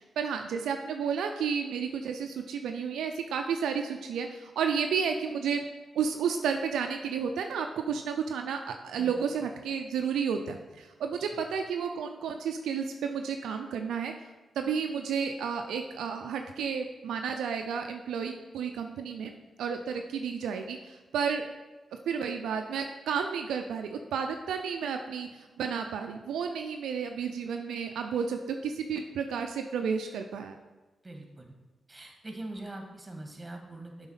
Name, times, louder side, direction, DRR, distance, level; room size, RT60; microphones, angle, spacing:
voice 1, 0.0-5.6 6.0-14.1 14.6-19.3 19.6-21.5 22.1-25.3 25.6-30.6, right 6 dB, 85° right, 5 dB, 0.4 m, -32 dB
voice 2, 31.0-31.5 31.9-34.1, right 2 dB, 25° right, 2 dB, 1.8 m, -43 dB
7.0 x 4.0 x 5.6 m, 1.2 s
supercardioid pair, 50°, 0 cm